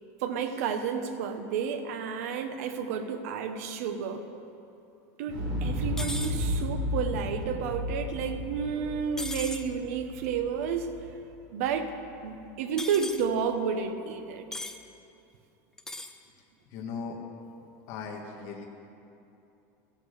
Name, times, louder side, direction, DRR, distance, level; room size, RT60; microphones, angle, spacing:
voice 1, 0.2-4.5 5.2-11.2 11.5-11.9 12.2-14.5, right 6 dB, 60° right, 8 dB, 1.1 m, -31 dB
Explosion, 5.3-11.3 11.6-11.7, left 1 dB, 45° right, 3.6 m, -33 dB
sound 1, 6.0-6.3 9.2-9.6 12.8-13.2 14.5-14.8 15.8-16.1, left 2 dB, 5° left, 0.5 m, -37 dB
voice 2, 16.7-17.2 17.9-18.7, left 5 dB, 45° left, 0 dB, 1.6 m, -38 dB
14.5 x 11.0 x 6.5 m, 2.8 s
supercardioid pair, 180°, 9 cm